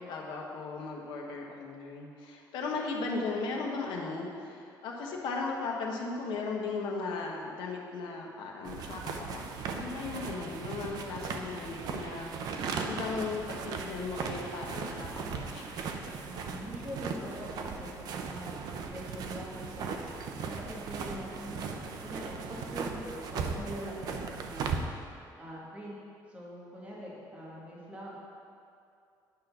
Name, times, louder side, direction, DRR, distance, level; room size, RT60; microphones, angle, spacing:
voice 1, 0.0-9.5 9.7-15.7, left 4 dB, 80° left, -1 dB, 1.2 m, -37 dB
sound 1, 8.6-24.8, right 5 dB, 60° right, 0.6 m, -38 dB
voice 2, 16.2-17.3 17.6-25.1 25.4-26.0 26.3-28.2, equal, 15° right, -6 dB, 1.4 m, -43 dB
10.5 x 3.8 x 5.8 m, 2.5 s
cardioid pair, 165°, 8 cm